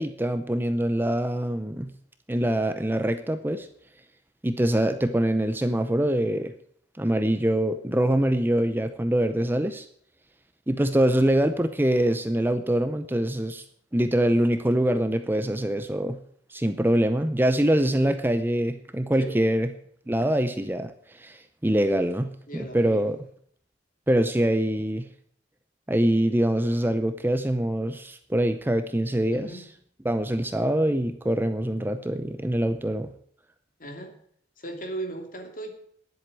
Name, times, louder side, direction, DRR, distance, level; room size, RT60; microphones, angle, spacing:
voice 1, 0.0-1.9 2.3-3.7 4.4-6.5 7.0-9.9 10.7-13.6 13.9-16.2 16.5-19.7 20.1-23.2 24.1-25.1 25.9-29.5 30.0-33.1, right 1 dB, 10° right, 9 dB, 0.6 m, -24 dB
voice 2, 22.5-23.0 29.3-29.6 33.8-34.1 34.6-35.7, right 2 dB, 45° left, 4 dB, 2.7 m, -37 dB
10.5 x 7.9 x 8.9 m, 0.63 s
head